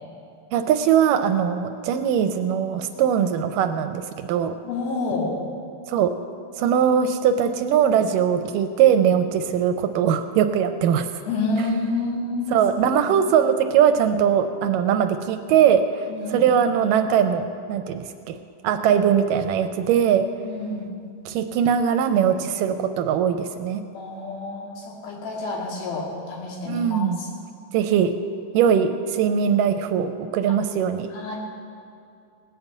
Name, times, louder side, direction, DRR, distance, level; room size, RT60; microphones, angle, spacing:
voice 1, 0.5-4.6 5.9-6.1 6.6-11.1 12.5-17.4 17.7-18.3 18.6-20.3 21.3-23.8 26.7-27.2 27.7-28.1 28.5-31.1, right 8 dB, 80° right, 8 dB, 2.1 m, -21 dB
voice 2, 4.6-5.4 11.3-12.6 12.9-13.0 16.1-16.5 20.4-20.9 23.9-27.3 31.1-31.4, left 3 dB, 85° left, -3 dB, 4.2 m, -28 dB
18.5 x 6.8 x 8.2 m, 2.4 s
omnidirectional pair, 4.1 m